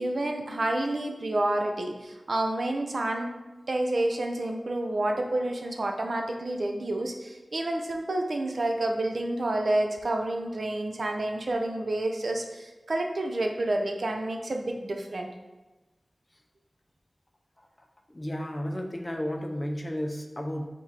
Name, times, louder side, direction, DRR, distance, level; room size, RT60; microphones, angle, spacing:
voice 1, 0.0-3.3 3.7-15.3, right 1 dB, 65° right, 3 dB, 0.5 m, -29 dB
voice 2, 18.1-20.7, equal, 25° left, 3 dB, 0.5 m, -33 dB
4.9 x 3.5 x 2.8 m, 1.1 s
wide cardioid pair, 85°, 0 cm